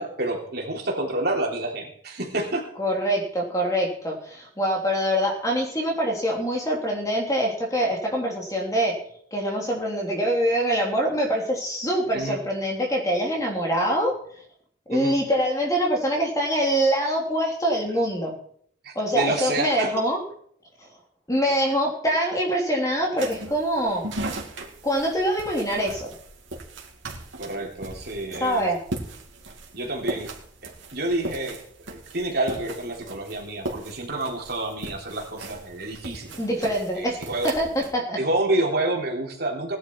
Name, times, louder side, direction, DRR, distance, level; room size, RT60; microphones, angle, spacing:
voice 1, 0.0-2.7 12.1-12.4 14.9-15.1 17.9-18.0 18.8-20.0 27.4-28.7 29.7-30.3 30.9-31.6 31.9-36.4 37.0-37.5 38.2-39.8, right 2 dB, 55° right, 0 dB, 3.5 m, -28 dB
voice 2, 2.8-9.0 9.3-14.1 14.9-18.3 18.9-20.2 21.3-24.1 24.8-26.1 28.4-28.8 36.4-38.2, equal, 15° left, -1 dB, 3.3 m, -24 dB
sound 1, 23.2-37.9, right 2 dB, 75° right, 2.9 m, -38 dB
18.5 x 11.5 x 4.7 m, 0.62 s
head